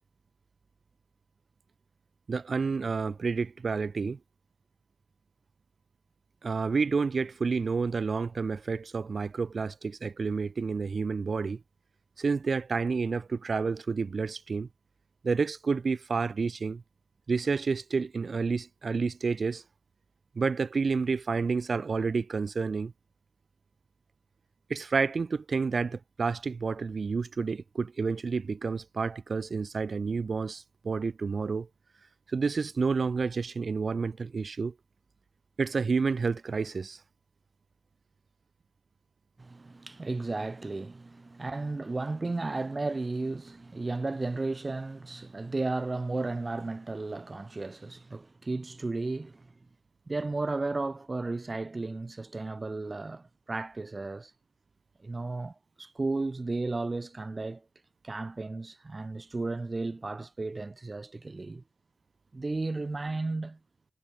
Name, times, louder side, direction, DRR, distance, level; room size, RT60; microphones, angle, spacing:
voice 1, 2.3-4.2 6.4-11.6 12.2-14.7 15.2-16.8 17.3-19.6 20.3-22.9 24.7-31.7 32.3-34.7 35.6-37.0, right 4 dB, 55° right, 1.5 m, -29 dB
voice 2, 39.4-49.5 50.1-54.3 55.0-57.6 58.0-61.6 62.3-63.6, right 3 dB, 30° right, 1.5 m, -34 dB
wide cardioid pair, 90°, 0 cm